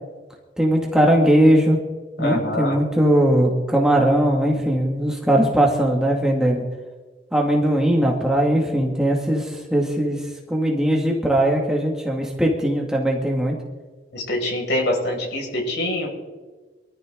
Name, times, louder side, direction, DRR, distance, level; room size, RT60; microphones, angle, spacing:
voice 1, 0.6-1.8 2.2-6.6 7.3-10.2 10.5-13.6, right 1 dB, 5° right, -1 dB, 2.3 m, -19 dB
voice 2, 2.2-2.8 14.1-16.1, left 1 dB, 80° left, -1 dB, 6.2 m, -24 dB
24.5 x 13.5 x 3.9 m, 1.3 s
head